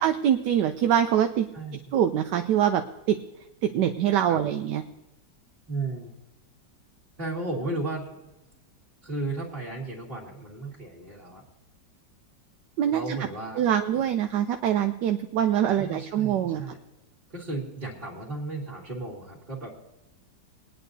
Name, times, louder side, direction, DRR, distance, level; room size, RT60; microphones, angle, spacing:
voice 1, 0.0-1.5 1.9-2.8 3.1-3.2 3.6-4.8 12.8-13.2 13.6-16.7, right 10 dB, 75° right, 7 dB, 1.2 m, -24 dB
voice 2, 5.7-6.1 7.2-8.3 9.0-11.4 12.9-13.6 15.7-16.8 17.3-19.7, right 2 dB, 30° right, -7 dB, 2.2 m, -34 dB
23.5 x 10.0 x 2.7 m, 1.0 s
omnidirectional pair, 1.9 m